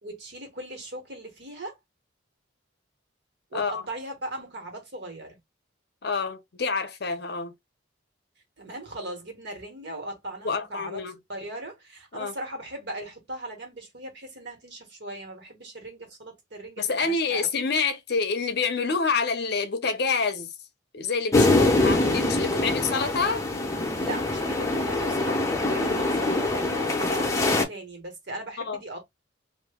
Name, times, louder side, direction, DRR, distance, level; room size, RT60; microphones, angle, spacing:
voice 1, 0.0-1.8 3.5-5.4 8.6-11.0 11.3-17.5 23.9-29.0, right 1 dB, 60° right, 1.4 m, -38 dB
voice 2, 3.5-3.8 6.0-7.5 10.4-11.2 12.1-12.3 16.8-20.5 20.9-23.4 28.7-28.8, left 4 dB, 55° left, 0.6 m, -27 dB
sound 1, 21.3-27.6, left 2 dB, 15° left, 0.7 m, -24 dB
2.8 x 2.6 x 3.5 m
head